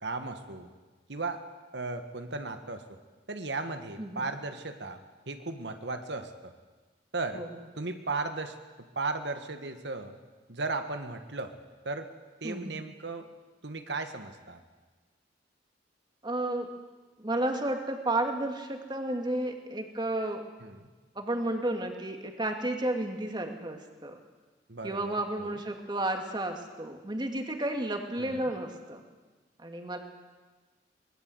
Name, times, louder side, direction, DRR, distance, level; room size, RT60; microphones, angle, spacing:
voice 1, 0.0-0.7 1.1-1.4 1.7-3.0 3.3-5.0 5.3-6.5 7.1-7.4 7.8-8.6 8.9-10.1 10.5-11.5 11.8-12.1 12.4-13.3 13.6-14.6 20.6-20.8 24.7-25.6 28.2-28.5, right 3 dB, 70° right, 7 dB, 1.7 m, -36 dB
voice 2, 12.4-12.8 16.2-16.7 17.2-20.4 21.2-24.2 24.8-29.0 29.6-30.0, right 1 dB, 25° right, 4 dB, 2.5 m, -32 dB
24.0 x 20.5 x 8.0 m, 1.3 s
head